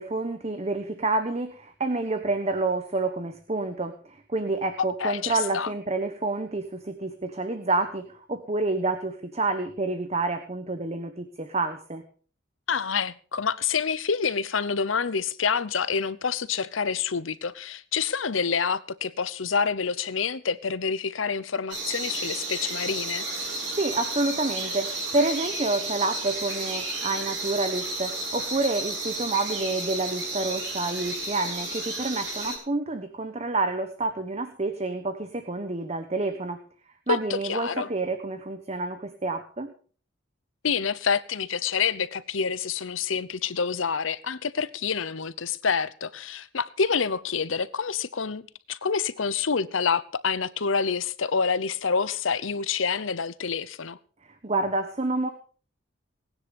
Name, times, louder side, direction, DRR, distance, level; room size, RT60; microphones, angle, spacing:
voice 1, 0.0-12.0 23.7-36.6 37.1-39.7 54.4-55.3, right 2 dB, 35° right, 1.2 m, -28 dB
voice 2, 4.8-5.7 12.7-23.3 37.1-37.9 40.6-48.4 48.7-54.0, left 6 dB, 90° left, 0.9 m, -27 dB
sound 1, 21.7-32.6, right 2 dB, 60° right, 7.0 m, -32 dB
18.5 x 10.0 x 5.3 m
head